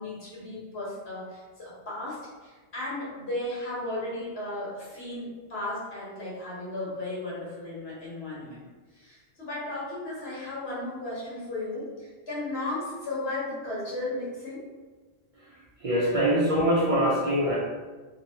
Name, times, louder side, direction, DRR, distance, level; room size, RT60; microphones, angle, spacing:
voice 1, 0.0-8.6 8.9-14.6, left 2 dB, 80° left, -7 dB, 1.5 m, -35 dB
voice 2, 15.3-17.6, equal, 45° right, -6 dB, 0.5 m, -24 dB
2.9 x 2.8 x 2.8 m, 1.3 s
omnidirectional pair, 1.0 m